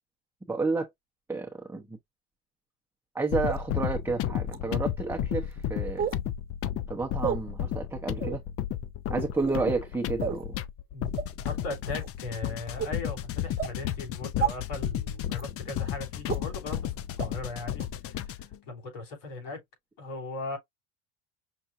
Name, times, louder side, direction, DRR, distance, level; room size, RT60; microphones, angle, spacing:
voice 1, 0.5-0.9 1.3-2.0 3.1-6.1 6.9-8.4 9.1-10.6, right 3 dB, 5° right, 0.9 m, -31 dB
sound 1, 3.3-18.6, left 10 dB, 45° left, 0.5 m, -33 dB
sound 2, 3.5-3.6 4.5-4.6 6.0-6.2 7.2-7.4 8.2-8.4 9.3-9.6 10.2-10.4 11.2-11.3 11.9-12.1 12.8-12.9 13.6-13.7 14.4-14.5 15.3-15.4 16.3-16.4 17.2-17.3 17.8-17.9, right 8 dB, 25° right, 1.3 m, -30 dB
voice 2, 11.4-16.8 17.2-19.6 20.0-20.6, left 2 dB, 70° left, 3.4 m, -38 dB
5.9 x 2.5 x 2.6 m
supercardioid pair, 100°, 34 cm